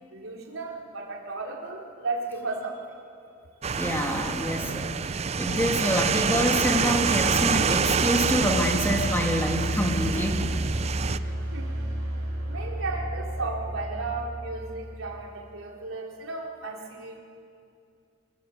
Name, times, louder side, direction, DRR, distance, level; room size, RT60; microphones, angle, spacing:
voice 1, 0.1-3.0 11.5-11.7 12.5-17.2, right 3 dB, 80° right, -1 dB, 3.9 m, -34 dB
sound 1, 3.6-11.2, right 6 dB, 30° right, 0.5 m, -26 dB
voice 2, 3.7-10.5, equal, 10° left, 2 dB, 2.3 m, -27 dB
sound 2, 5.2-15.2, right 1 dB, 60° right, 5.9 m, -33 dB
25.0 x 19.5 x 8.0 m, 2.4 s
head